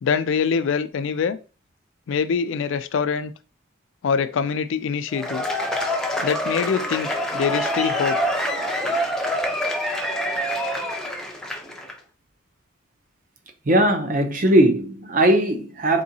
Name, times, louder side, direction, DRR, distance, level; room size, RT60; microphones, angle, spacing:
voice 1, 0.0-1.4 2.1-3.3 4.0-5.5 6.2-8.2, left 6 dB, 70° left, 0.3 m, -24 dB
Cheering / Applause / Crowd, 5.1-11.9, equal, 5° left, 0.4 m, -26 dB
voice 2, 13.7-16.0, right 1 dB, 40° right, 0.5 m, -19 dB
3.8 x 2.7 x 2.7 m
head